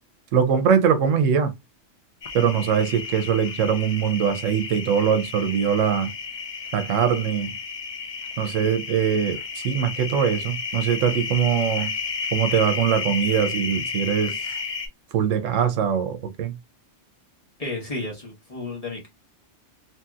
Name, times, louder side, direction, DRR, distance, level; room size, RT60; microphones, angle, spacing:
voice 1, 0.3-1.5 2.3-6.1 6.7-7.5 8.4-11.9 12.3-14.4 15.1-16.5, right 8 dB, 85° right, 1.0 m, -22 dB
sound 1, 2.2-14.9, left 5 dB, 65° left, 0.3 m, -32 dB
voice 2, 17.6-19.1, left 2 dB, 30° left, 1.2 m, -32 dB
3.0 x 2.8 x 2.3 m
omnidirectional pair, 1.3 m